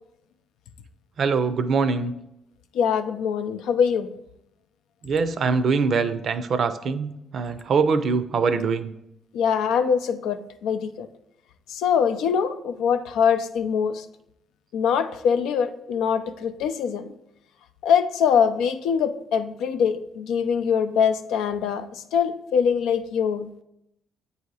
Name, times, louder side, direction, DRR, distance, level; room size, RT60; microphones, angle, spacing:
voice 1, 1.2-2.1 5.0-8.9, right 5 dB, 55° right, 11 dB, 0.5 m, -23 dB
voice 2, 2.7-4.1 9.3-11.1 11.7-14.1 14.7-17.1 17.8-23.6, left 7 dB, 90° left, 9 dB, 0.4 m, -23 dB
8.2 x 2.8 x 4.6 m, 0.80 s
cardioid pair, 90°, 0 cm